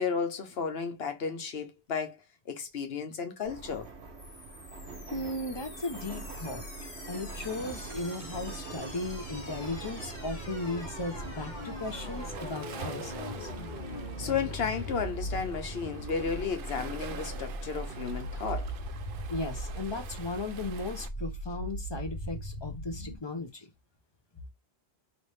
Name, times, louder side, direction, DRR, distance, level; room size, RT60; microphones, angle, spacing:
voice 1, 0.0-2.2 2.5-3.9 14.2-18.7, left 6 dB, 70° left, 1.1 m, -33 dB
Subway metro underground, 3.4-15.5, right 2 dB, 80° right, 1.4 m, -44 dB
sound 1, 4.2-23.2, equal, 50° left, 1.0 m, -41 dB
voice 2, 5.1-6.6 7.1-13.5 19.3-23.7, left 2 dB, 30° left, 0.7 m, -36 dB
Waves surf, 7.4-21.1, right 6 dB, 60° right, 0.7 m, -46 dB
4.1 x 3.1 x 3.3 m
omnidirectional pair, 1.1 m